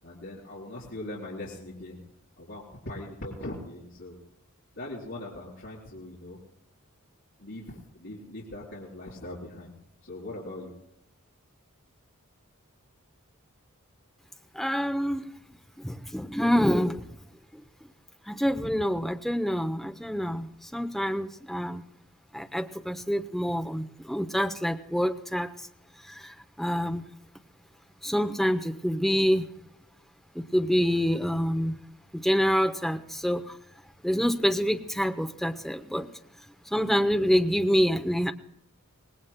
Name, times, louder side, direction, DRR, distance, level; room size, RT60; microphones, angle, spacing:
voice 1, 0.0-2.0 2.4-4.2 4.8-6.4 7.4-9.7 10.0-10.7, left 1 dB, 55° left, -5 dB, 4.0 m, -40 dB
voice 2, 14.5-15.3 15.8-17.0 18.3-21.8 22.3-25.5 26.1-27.1 28.0-29.5 30.3-31.7 32.1-33.6 34.0-36.1 36.7-38.3, equal, ahead, 6 dB, 0.6 m, -26 dB
25.5 x 19.5 x 2.2 m, 0.81 s
head